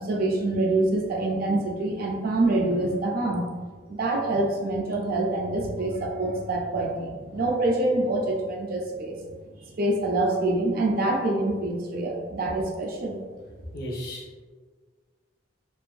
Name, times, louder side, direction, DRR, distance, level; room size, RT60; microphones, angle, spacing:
voice 1, 0.0-3.4 3.9-9.2 9.8-13.2, right 2 dB, 50° right, 0 dB, 0.4 m, -26 dB
voice 2, 13.7-14.4, equal, 50° left, -5 dB, 0.6 m, -35 dB
2.6 x 2.4 x 2.3 m, 1.5 s
head